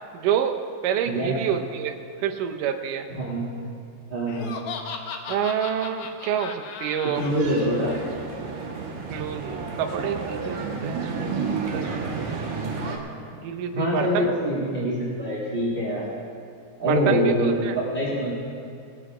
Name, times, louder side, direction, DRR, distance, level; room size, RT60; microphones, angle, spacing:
voice 1, 0.1-0.6 0.8-3.1 5.3-7.2 9.1-12.3 13.3-14.3 16.9-17.8, right 8 dB, 85° right, 4 dB, 2.3 m, -28 dB
voice 2, 1.0-1.4 3.1-3.6 4.1-4.5 7.2-8.0 13.7-16.1 16.8-18.3, equal, 20° right, -6 dB, 1.8 m, -25 dB
Laughter, 4.3-7.3, left 5 dB, 70° left, 1.4 m, -36 dB
sound 1, 7.1-13.0, right 4 dB, 65° right, 2.7 m, -31 dB
20.0 x 8.0 x 4.9 m, 2.4 s
omnidirectional pair, 3.6 m